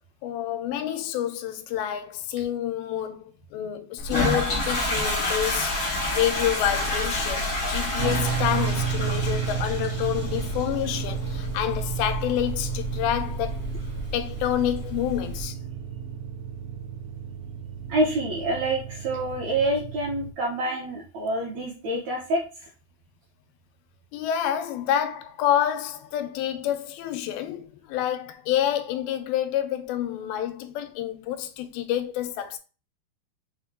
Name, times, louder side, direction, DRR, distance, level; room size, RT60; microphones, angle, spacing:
voice 1, 0.2-3.2 3.5-5.8 6.1-13.6 14.1-15.6 24.1-32.6, left 11 dB, 85° left, 2.4 m, -28 dB
Toilet flush, 4.0-15.4, left 1 dB, 55° left, 0.9 m, -29 dB
sound 1, 8.0-20.3, right 8 dB, 85° right, 1.8 m, -32 dB
voice 2, 17.9-22.7, right 1 dB, 70° right, 1.7 m, -27 dB
5.9 x 2.2 x 3.6 m
omnidirectional pair, 4.1 m